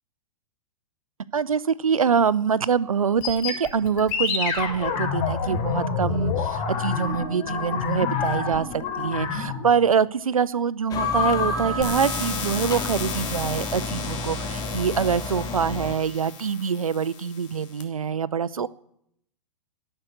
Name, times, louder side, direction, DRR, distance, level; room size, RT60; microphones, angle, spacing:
voice 1, 1.3-18.7, right 6 dB, 75° right, 20 dB, 0.7 m, -24 dB
sound 1, 3.2-9.7 10.9-13.5, left 5 dB, 35° left, 3.1 m, -28 dB
sound 2, 10.9-15.9, left 3 dB, 20° left, 1.8 m, -32 dB
sound 3, 11.8-17.8, left 6 dB, 55° left, 2.6 m, -35 dB
13.0 x 11.5 x 8.1 m, 0.75 s
figure-of-eight pair, 105°, 18 cm